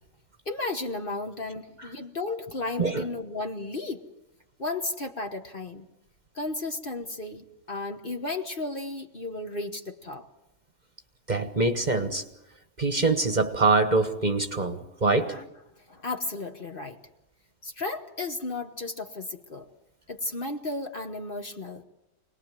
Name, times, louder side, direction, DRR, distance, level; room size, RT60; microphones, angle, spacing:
voice 1, 0.4-4.0 4.6-5.9 6.3-10.3 15.3-15.4 15.9-17.0 17.6-19.7 20.1-21.8, left 2 dB, 40° left, 1.3 m, -34 dB
voice 2, 11.3-12.2 12.8-15.4, right 3 dB, 35° right, 1.3 m, -24 dB
26.0 x 19.5 x 7.5 m
omnidirectional pair, 1.5 m